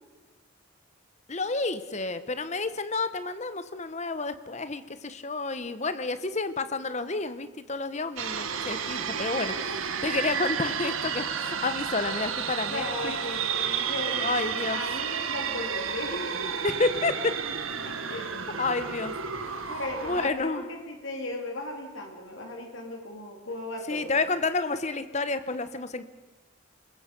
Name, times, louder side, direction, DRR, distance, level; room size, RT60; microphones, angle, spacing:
voice 1, 1.3-9.5 10.0-13.2 14.2-14.8 16.6-17.3 18.6-19.1 19.4-19.5 20.0-20.6 23.9-26.0, left 3 dB, 35° left, 12 dB, 1.0 m, -30 dB
sound 1, 8.2-20.3, right 7 dB, 80° right, 1.5 m, -31 dB
voice 2, 9.1-9.5 12.7-16.5 17.8-18.3 19.7-24.2, left 1 dB, 70° left, 2 dB, 3.1 m, -37 dB
25.5 x 21.0 x 5.3 m, 1.3 s
head